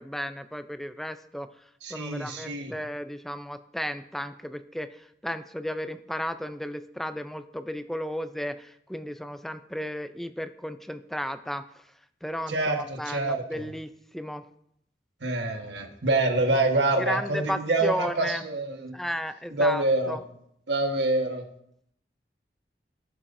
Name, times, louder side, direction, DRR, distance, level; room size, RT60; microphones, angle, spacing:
voice 1, 0.0-1.5 1.9-11.6 12.2-14.4 17.0-18.4 18.9-20.2, equal, ahead, 10 dB, 0.4 m, -34 dB
voice 2, 1.8-2.7 12.5-13.7 15.2-18.9 19.5-20.2 20.7-21.5, right 2 dB, 90° right, 4 dB, 1.4 m, -26 dB
17.0 x 7.2 x 2.7 m, 0.72 s
head